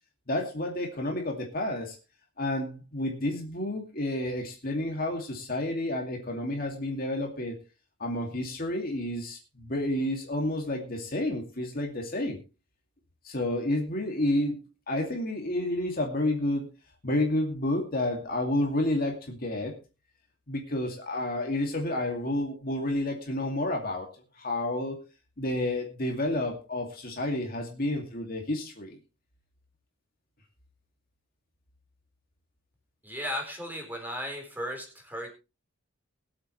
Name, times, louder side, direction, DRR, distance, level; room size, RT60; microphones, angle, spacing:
voice 1, 0.3-2.0 2.4-7.6 8.0-12.4 13.2-14.6 14.9-16.7 17.0-19.8 20.5-24.1 24.4-25.0 25.4-29.0, left 1 dB, 45° left, 2 dB, 2.4 m, -30 dB
voice 2, 33.0-35.3, equal, 10° right, 2 dB, 4.1 m, -35 dB
22.5 x 8.1 x 3.2 m, 0.30 s
head